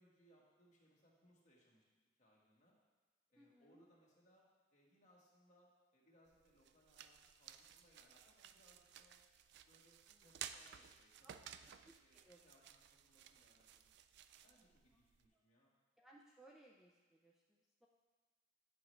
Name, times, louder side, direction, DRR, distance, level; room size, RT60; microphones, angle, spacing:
voice 1, 0.0-1.8 2.2-2.8 3.3-9.2 9.6-11.7 12.0-13.9 14.4-15.7, equal, 40° left, -4 dB, 1.5 m, -72 dB
voice 2, 3.4-3.8 10.1-10.3 11.2-11.4 11.9-12.5 14.9-15.0 15.3-15.4 16.0-17.9, right 1 dB, ahead, -3 dB, 0.5 m, -66 dB
sound 1, 6.3-15.3, right 9 dB, 60° right, 0.3 m, -56 dB
8.9 x 6.1 x 3.2 m, 1.4 s
head